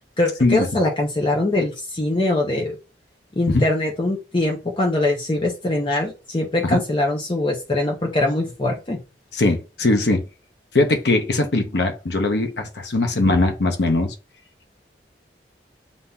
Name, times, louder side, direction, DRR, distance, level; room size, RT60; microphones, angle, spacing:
voice 1, 0.2-2.7 3.4-9.0, left 2 dB, 30° left, 0.6 m, -22 dB
voice 2, 9.3-10.2 10.7-14.1, left 2 dB, 70° left, 0.7 m, -20 dB
6.9 x 2.7 x 2.3 m
head